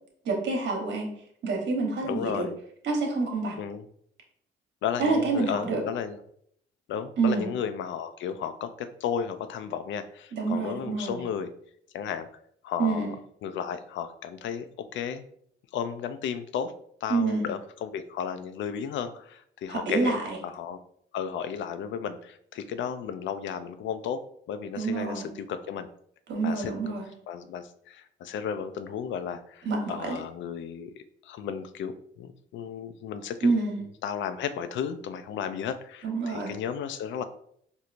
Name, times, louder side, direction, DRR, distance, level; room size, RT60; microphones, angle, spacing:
voice 1, 0.2-1.1 1.4-2.5 2.8-3.6 5.0-5.8 7.2-7.5 10.3-11.2 12.8-13.1 17.1-17.4 19.7-20.4 24.8-25.3 26.3-27.1 29.6-30.2 33.4-33.8 36.0-36.5, right 3 dB, 65° right, 1 dB, 1.1 m, -27 dB
voice 2, 2.0-2.5 3.6-3.8 4.8-6.2 6.9-11.5 11.9-12.3 12.6-13.2 13.4-15.2 15.7-16.7 17.0-20.2 20.4-20.8 21.1-24.2 24.5-25.9 26.4-26.7 27.3-33.5 34.0-37.2, left 8 dB, 70° left, 11 dB, 0.4 m, -34 dB
4.3 x 2.6 x 2.5 m, 0.66 s
cardioid pair, 90°, 20 cm